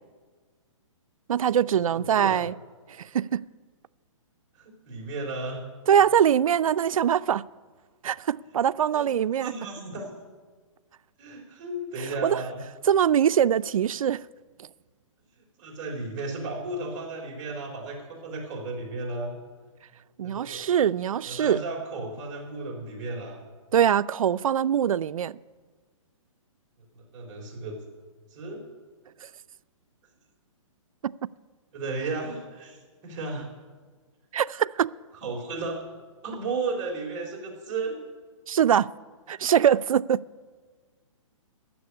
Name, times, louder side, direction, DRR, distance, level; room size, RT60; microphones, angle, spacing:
voice 1, 1.3-2.5 3.0-3.5 5.9-7.4 8.0-9.5 12.2-12.4 12.9-14.2 20.2-21.6 23.7-25.3 31.0-31.1 34.3-34.9 38.5-38.9 39.3-40.2, right 9 dB, 90° right, 0.4 m, -23 dB
voice 2, 2.1-2.5 4.5-5.6 8.9-10.1 11.2-12.6 15.6-19.3 20.2-20.6 21.2-23.4 27.0-27.8 28.3-28.6 31.7-32.8 33.0-33.5 35.2-35.8 36.2-37.9 39.4-39.5, right 3 dB, 35° right, 3.7 m, -34 dB
13.0 x 7.2 x 9.6 m
hypercardioid pair, 165°, 17 cm